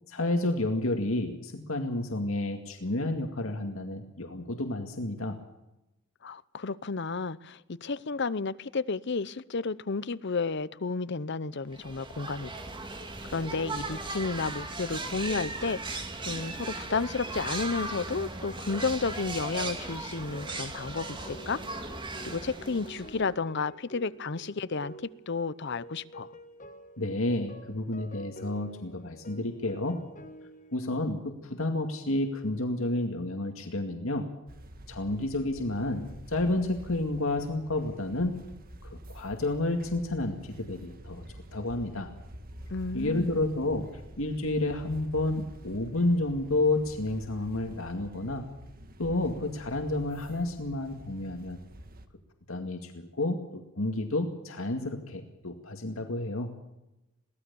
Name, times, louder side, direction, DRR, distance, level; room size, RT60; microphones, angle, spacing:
voice 1, 0.1-5.4 27.0-30.0 30.7-34.3 34.9-38.4 38.8-41.2 41.5-42.1 42.9-43.8 44.2-48.4 49.0-51.6 52.5-56.5, left 2 dB, 80° left, 4 dB, 2.2 m, -30 dB
voice 2, 6.2-12.5 13.3-16.0 16.3-21.6 22.2-26.3 42.7-43.4, left 4 dB, 55° left, 17 dB, 0.7 m, -32 dB
sound 1, 11.7-23.3, right 2 dB, 25° right, 2.5 m, -37 dB
sound 2, 19.6-30.8, right 1 dB, 40° left, 1.9 m, -49 dB
sound 3, 34.5-52.1, right 1 dB, 45° right, 1.8 m, -47 dB
23.0 x 17.5 x 7.0 m, 0.95 s
head